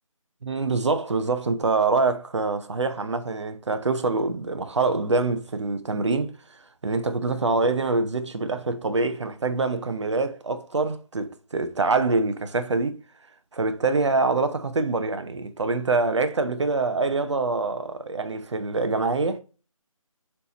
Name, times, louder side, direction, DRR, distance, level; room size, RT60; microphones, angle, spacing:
voice 1, 0.4-6.3 6.8-12.9 13.5-19.4, right 3 dB, 55° right, 0.9 m, -25 dB
7.2 x 3.4 x 4.1 m
figure-of-eight pair, 170°, 18 cm